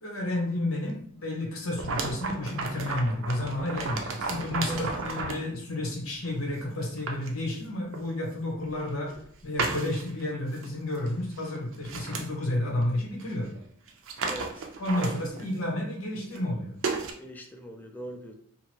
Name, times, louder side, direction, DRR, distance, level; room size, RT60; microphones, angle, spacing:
voice 1, 0.0-9.1 9.4-13.5 14.8-16.7, left 1 dB, 75° left, -1 dB, 0.9 m, -31 dB
sound 1, 1.7-5.5 6.3-6.4 6.8-7.3 7.9-8.0 8.8-9.2 9.6-10.2 10.6-10.7 11.0-11.1 11.4-12.3 13.2-13.3 13.6-13.7 13.9-15.5 16.3-16.4 16.8-17.1, right 3 dB, 65° right, 0.5 m, -33 dB
voice 2, 14.3-14.7 17.2-18.3, right 1 dB, 10° left, 2 dB, 0.4 m, -41 dB
2.8 x 2.6 x 2.9 m, 0.65 s
head